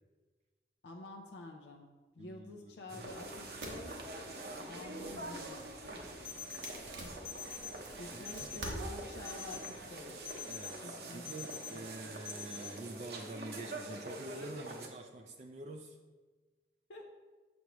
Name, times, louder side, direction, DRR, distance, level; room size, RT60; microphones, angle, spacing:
voice 1, 0.8-1.9 2.1-4.0 4.6-6.0 7.9-10.2 10.8-11.8 16.9-17.1, left 2 dB, 85° left, 1 dB, 0.6 m, -49 dB
voice 2, 2.2-2.7 3.1-3.8 4.3-4.4 8.1-8.6 10.5-16.0, right 2 dB, 40° right, 4 dB, 0.4 m, -47 dB
sound 1, 2.9-14.9, right 2 dB, 65° right, 0.8 m, -45 dB
sound 2, 3.0-10.6, right 1 dB, 90° right, 1.2 m, -49 dB
sound 3, 6.2-6.7 7.2-7.7 8.3-8.7 9.3-9.7 10.3-10.7 11.3-11.7 12.3-12.7, left 9 dB, 35° left, 0.6 m, -44 dB
6.9 x 6.2 x 3.0 m, 1.3 s
head